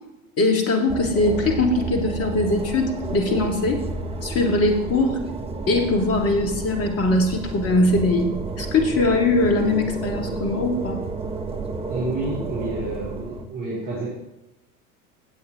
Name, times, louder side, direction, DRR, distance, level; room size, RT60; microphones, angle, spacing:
voice 1, 0.4-3.9 4.2-5.2 5.7-8.3 8.6-11.0, left 2 dB, 30° left, 3 dB, 2.1 m, -21 dB
sound 1, 0.9-13.4, right 4 dB, 15° right, 0.9 m, -31 dB
voice 2, 11.9-14.1, right 2 dB, 35° right, -7 dB, 4.3 m, -29 dB
17.0 x 7.7 x 3.0 m, 0.93 s
figure-of-eight pair, 80°, 45 cm